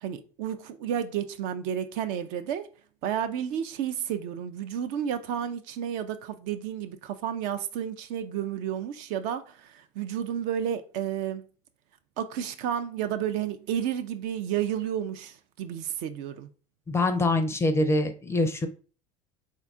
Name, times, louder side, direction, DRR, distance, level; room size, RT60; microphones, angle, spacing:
voice 1, 0.0-2.7 3.0-11.4 12.2-16.5, right 9 dB, 45° right, 0.4 m, -31 dB
voice 2, 16.9-18.7, left 2 dB, 15° left, 0.5 m, -24 dB
3.6 x 2.3 x 3.5 m
figure-of-eight pair, 70°, 18 cm